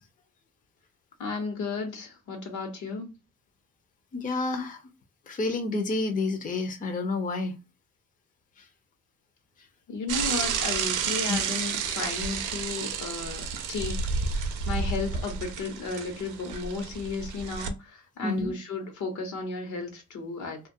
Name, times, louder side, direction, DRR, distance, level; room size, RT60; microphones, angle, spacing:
voice 1, 1.2-3.1 9.9-14.0 14.3-20.7, left 3 dB, 75° left, 1.0 m, -34 dB
voice 2, 4.1-4.8 5.3-7.6 8.6-8.7 11.3-11.4 18.2-18.5, left 3 dB, 25° left, 0.6 m, -29 dB
Bicycle / Mechanisms, 10.1-17.7, right 6 dB, 85° right, 0.5 m, -31 dB
2.4 x 2.2 x 2.6 m
cardioid pair, 90°, 30 cm